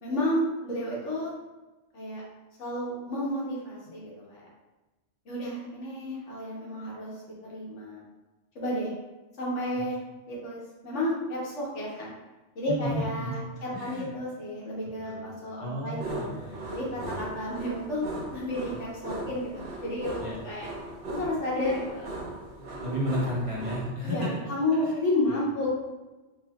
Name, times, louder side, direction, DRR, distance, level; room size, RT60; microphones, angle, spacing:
voice 1, 0.0-1.3 1.9-2.2 2.6-4.5 5.2-7.1 7.5-8.0 8.5-8.9 9.4-10.0 10.3-12.1 12.5-16.3 16.7-18.1 18.3-20.7 21.1-22.2 24.0-25.7, left 1 dB, 75° left, -5 dB, 1.4 m, -31 dB
voice 2, 12.7-14.1 15.0-15.2 15.6-17.1 20.2-20.4 22.6-24.3 24.8-24.9 25.3-25.4, equal, 30° right, -7 dB, 0.9 m, -33 dB
sound 1, 16.0-23.8, right 2 dB, 50° right, 1.1 m, -38 dB
4.5 x 3.1 x 2.3 m, 1.1 s
omnidirectional pair, 1.2 m